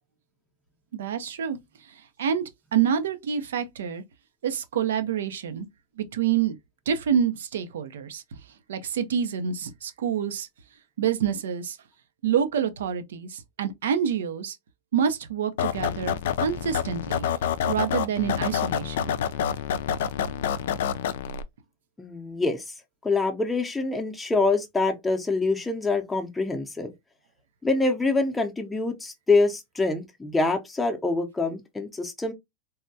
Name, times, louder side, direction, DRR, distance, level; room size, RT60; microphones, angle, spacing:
voice 1, 0.9-1.6 2.2-2.4 2.7-4.0 4.4-5.7 6.0-6.6 6.9-8.2 8.7-10.5 11.0-11.8 12.2-14.6 14.9-17.3 17.7-19.0, right 8 dB, 85° right, 0.6 m, -27 dB
sound 1, 15.6-21.4, left 9 dB, 80° left, 0.3 m, -27 dB
voice 2, 22.0-22.6 23.0-26.9 27.6-32.3, left 3 dB, 10° left, 0.6 m, -25 dB
3.4 x 2.2 x 2.6 m
supercardioid pair, 130°, 0 cm